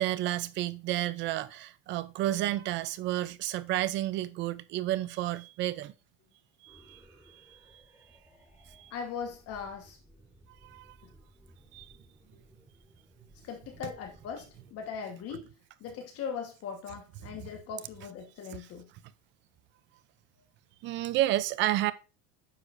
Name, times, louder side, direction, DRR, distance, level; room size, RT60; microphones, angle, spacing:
voice 1, 0.0-5.9 6.6-7.0 7.3-7.8 8.7-8.9 10.6-10.9 11.7-11.9 20.8-21.9, right 14 dB, 30° right, 0.4 m, -31 dB
sound 1, 6.7-14.8, right 1 dB, 5° right, 2.8 m, -59 dB
voice 2, 8.9-10.0 11.0-11.1 13.4-15.5 15.8-18.9, left 6 dB, 40° left, 1.2 m, -39 dB
9.8 x 6.3 x 2.5 m
cardioid pair, 160°, 38 cm